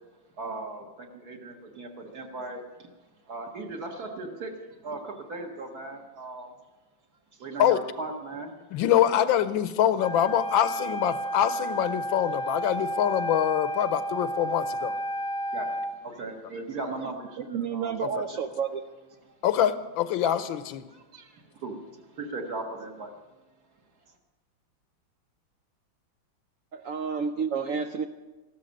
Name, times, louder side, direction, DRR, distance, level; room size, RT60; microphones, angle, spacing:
voice 1, 0.4-2.9 3.3-4.5 4.8-6.5 7.4-8.5 9.0-9.3 15.1-18.4 19.3-19.4 20.9-23.1, right 3 dB, 50° right, 2 dB, 2.0 m, -38 dB
voice 2, 8.7-15.0 19.4-20.9, left 10 dB, 80° left, 13 dB, 1.5 m, -24 dB
Wind instrument woodwind instrument, 10.0-16.0, right 1 dB, 5° left, 1.0 m, -32 dB
voice 3, 17.5-18.8 26.7-28.1, right 6 dB, 90° right, 7 dB, 0.7 m, -30 dB
14.5 x 12.5 x 6.5 m, 1.1 s
omnidirectional pair, 2.2 m